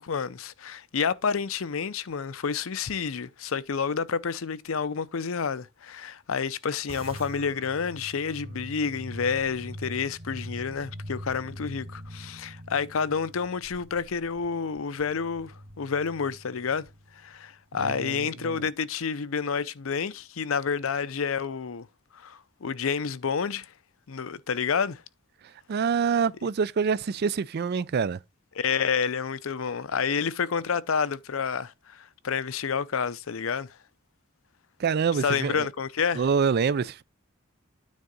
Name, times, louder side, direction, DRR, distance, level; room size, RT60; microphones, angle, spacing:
voice 1, 0.0-16.9 17.2-21.9 22.1-23.7 24.1-25.0 28.6-33.7 35.2-36.2, left 6 dB, 70° left, 0.6 m, -29 dB
sound 1, 6.9-17.5, equal, 30° right, 1.0 m, -43 dB
voice 2, 17.8-18.6 25.7-28.2 34.8-35.7 36.1-37.0, right 6 dB, 50° right, 0.4 m, -26 dB
9.5 x 3.7 x 5.2 m
head